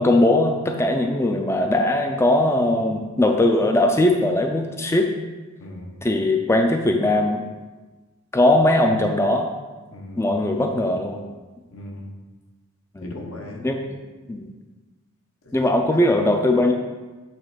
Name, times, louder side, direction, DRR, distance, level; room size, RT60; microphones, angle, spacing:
voice 1, 0.0-5.1 6.0-7.4 8.3-9.5 10.2-11.2 13.0-13.2 13.6-13.8 14.3-14.5 15.5-16.7, left 1 dB, 15° left, 3 dB, 0.4 m, -20 dB
voice 2, 5.6-6.0 9.9-10.3 11.7-12.1 13.0-13.8 15.4-15.6 15.9-16.1, left 1 dB, 75° left, 0 dB, 1.2 m, -38 dB
8.3 x 3.2 x 5.0 m, 1.2 s
head